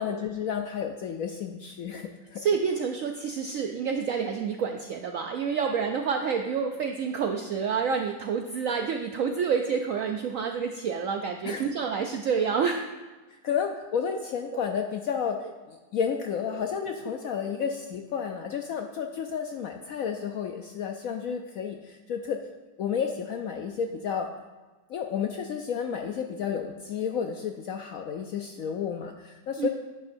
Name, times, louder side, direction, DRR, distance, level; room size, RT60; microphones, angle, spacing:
voice 1, 0.0-2.4 11.4-11.7 13.4-15.4 15.7-22.4 22.8-24.3 24.9-29.7, left 7 dB, 70° left, 4 dB, 0.8 m, -31 dB
voice 2, 2.4-12.9 14.5-14.6 16.5-16.6 17.5-17.6 29.6-29.7, right 6 dB, 75° right, 4 dB, 0.7 m, -28 dB
10.5 x 9.0 x 2.6 m, 1.3 s
omnidirectional pair, 2.0 m